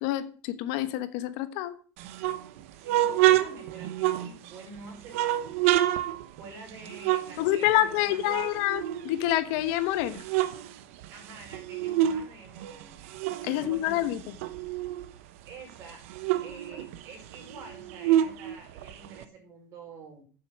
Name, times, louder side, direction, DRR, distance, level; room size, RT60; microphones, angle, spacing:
voice 1, 0.0-1.7 7.4-10.2 13.4-14.2, left 13 dB, 70° left, 12 dB, 1.1 m, -27 dB
sound 1, 2.0-4.7 5.1-8.0 8.3-9.6 10.0-12.3 12.6-15.1 15.5-15.6 15.8-19.2, right 13 dB, 90° right, 1.0 m, -28 dB
voice 2, 2.8-6.1 6.4-8.4 11.1-13.0 13.5-14.1 15.5-16.0 16.3-20.3, right 4 dB, 45° right, 1 dB, 5.4 m, -47 dB
9.0 x 7.7 x 6.2 m, 0.41 s
cardioid pair, 140°, 7 cm